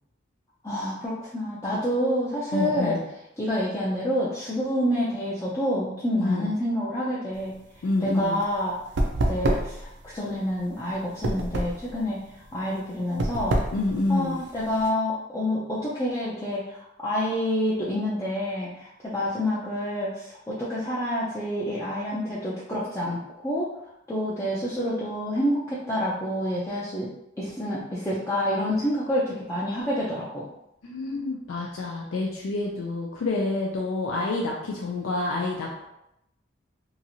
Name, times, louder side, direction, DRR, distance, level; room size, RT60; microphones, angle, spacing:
voice 1, 0.6-3.0 3.4-7.5 8.0-8.8 9.3-12.2 12.5-13.6 14.1-23.7 24.1-27.1 27.4-30.5, equal, 15° left, -8 dB, 0.4 m, -28 dB
voice 2, 2.5-3.0 6.2-6.5 7.8-8.4 13.7-14.4 30.8-35.9, left 2 dB, 90° left, -1 dB, 0.4 m, -28 dB
sound 1, 7.3-14.9, right 1 dB, 65° right, 0.4 m, -29 dB
2.9 x 2.4 x 2.7 m, 0.82 s
head